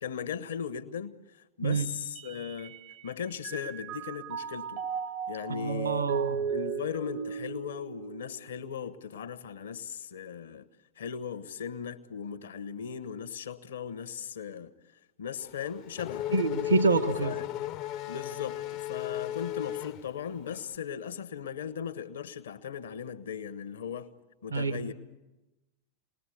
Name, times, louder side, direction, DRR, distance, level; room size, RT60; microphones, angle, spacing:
voice 1, 0.0-2.7 3.0-4.8 5.3-6.1 6.5-10.7 11.0-14.7 15.2-16.3 17.2-17.4 18.1-24.1 24.4-24.9, left 7 dB, 65° left, 1.2 m, -38 dB
Mallet percussion, 1.7-3.1 3.4-8.9, right 7 dB, 40° right, 0.9 m, -36 dB
voice 2, 5.5-6.4 16.3-17.4 24.5-24.9, right 4 dB, 75° right, 1.3 m, -27 dB
Race car auto racing / Accelerating revving vroom, 15.4-20.6, left 13 dB, 40° left, 0.7 m, -35 dB
27.5 x 20.0 x 8.0 m
figure-of-eight pair, 90°, 0 cm